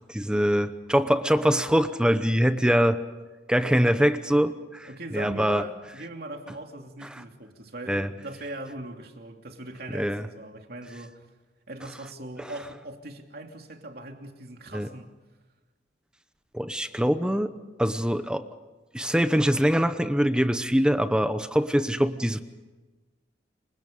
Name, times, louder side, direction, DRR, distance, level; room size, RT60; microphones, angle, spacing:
voice 1, 0.1-3.0 3.5-5.6 7.9-8.1 9.9-10.3 12.4-12.5 14.7-14.9 16.5-17.5 17.8-18.5 18.9-22.4, equal, 5° right, 0.9 m, -23 dB
voice 2, 4.9-11.3 11.7-15.2, right 2 dB, 60° right, 2.9 m, -40 dB
29.0 x 25.0 x 5.3 m
head